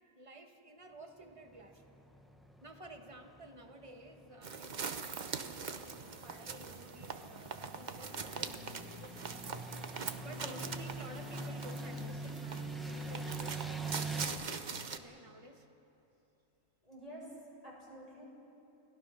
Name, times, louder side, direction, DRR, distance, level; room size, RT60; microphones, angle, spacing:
voice 1, 0.1-1.8 2.6-15.7, right 1 dB, 20° right, 3 dB, 1.6 m, -53 dB
sound 1, 1.3-14.3, right 2 dB, ahead, 1.1 m, -45 dB
sound 2, 4.4-15.0, right 5 dB, 40° right, 0.8 m, -43 dB
voice 2, 10.2-10.6 16.8-17.3 17.6-18.2, equal, 25° left, -5 dB, 6.9 m, -50 dB
30.0 x 20.0 x 5.7 m, 2.9 s
omnidirectional pair, 1.5 m